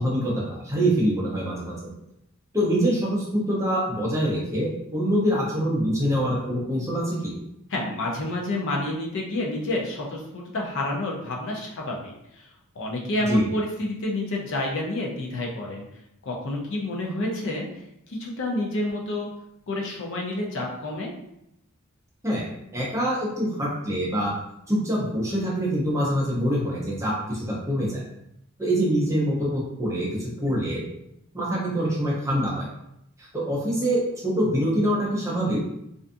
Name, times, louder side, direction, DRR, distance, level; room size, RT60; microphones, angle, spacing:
voice 1, 0.0-1.8 2.5-7.4 13.3-13.5 22.2-22.5 22.7-24.3 24.7-28.0 28.6-30.9 31.3-32.7 33.2-35.6, equal, 15° right, -4 dB, 0.6 m, -25 dB
voice 2, 7.7-15.8 16.2-17.7 18.1-19.3 19.7-21.1, left 1 dB, 60° left, -1 dB, 0.5 m, -29 dB
2.5 x 2.3 x 2.5 m, 0.79 s
head